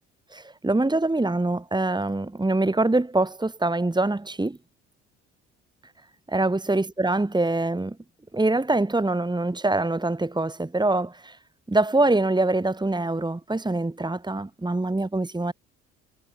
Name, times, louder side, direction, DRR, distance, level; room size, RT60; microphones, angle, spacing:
voice 1, 0.3-4.6 6.3-8.0 8.3-11.4 11.7-15.5, right 2 dB, 10° right, 3.3 m, -24 dB
hypercardioid pair, 55°, 35 cm